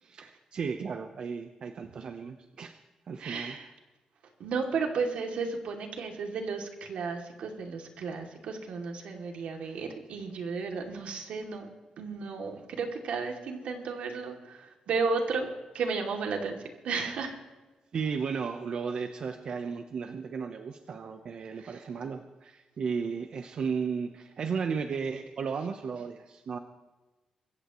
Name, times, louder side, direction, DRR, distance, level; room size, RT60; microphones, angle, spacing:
voice 1, 0.0-2.7 3.1-3.6 9.6-9.8 17.9-26.6, right 5 dB, 50° right, 6 dB, 0.9 m, -34 dB
voice 2, 3.2-3.7 4.4-11.7 12.0-15.5 15.7-16.6 16.8-17.4 21.6-21.8, right 4 dB, 80° right, 3 dB, 2.7 m, -33 dB
25.0 x 15.0 x 3.1 m, 1.2 s
wide cardioid pair, 170°, 2 cm